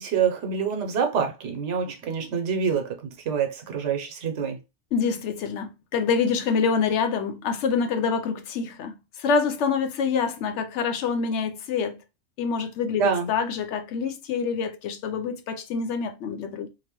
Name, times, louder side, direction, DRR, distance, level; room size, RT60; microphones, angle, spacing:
voice 1, 0.0-3.0 3.2-4.6 13.0-13.3, right 6 dB, 90° right, 1.0 m, -26 dB
voice 2, 4.9-12.0 12.4-16.7, left 5 dB, 85° left, 0.9 m, -26 dB
2.8 x 2.0 x 2.9 m
omnidirectional pair, 1.2 m